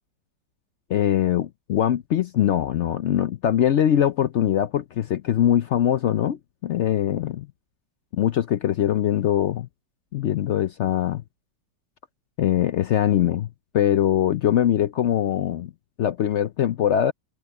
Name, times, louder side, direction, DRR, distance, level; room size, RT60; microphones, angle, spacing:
voice 1, 0.9-7.5 8.1-9.7 10.1-11.2 12.4-13.5 13.7-15.7 16.0-17.1, left 10 dB, 80° left, 0.6 m, -22 dB
omnidirectional pair, 1.9 m